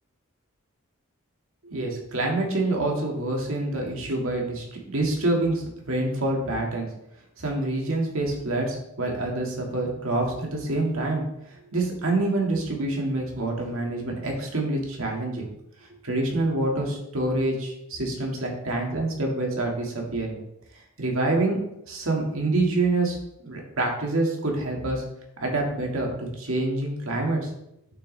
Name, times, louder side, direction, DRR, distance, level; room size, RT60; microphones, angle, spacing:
voice 1, 1.6-6.9 7.4-11.2 11.7-15.5 16.0-20.4 21.0-21.6 21.9-23.2 23.4-25.0 25.4-27.5, right 2 dB, 70° right, 0 dB, 1.8 m, -26 dB
8.3 x 6.1 x 3.2 m, 0.80 s
head